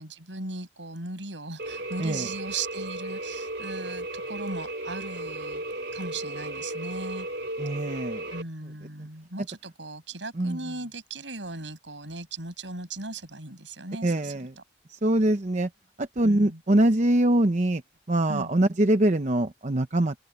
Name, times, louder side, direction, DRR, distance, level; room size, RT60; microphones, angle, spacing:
voice 1, 0.0-5.6 5.9-7.3 8.3-14.3 16.2-16.6 18.3-18.5, right 3 dB, 80° right, 6.9 m, -37 dB
sound 1, 1.6-8.4, right 2 dB, 60° right, 4.8 m, -35 dB
voice 2, 7.6-8.2 10.4-10.6 14.0-14.5 14.9-15.7 16.0-17.8 18.1-20.1, right 1 dB, 40° right, 0.8 m, -23 dB
open air
head